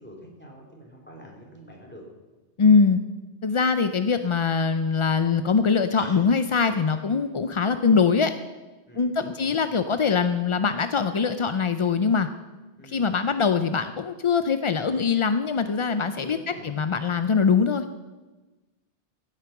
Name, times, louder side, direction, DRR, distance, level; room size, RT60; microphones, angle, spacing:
voice 1, 0.0-2.0 6.0-6.2 6.6-6.8 8.9-9.9 12.8-13.1 14.8-14.9 16.2-16.8, equal, 10° left, -2 dB, 3.2 m, -45 dB
voice 2, 2.6-3.0 3.4-8.3 9.0-12.3 12.8-16.4 16.6-17.8, left 5 dB, 50° left, 10 dB, 0.3 m, -22 dB
15.5 x 9.1 x 5.8 m, 1.2 s
omnidirectional pair, 1.2 m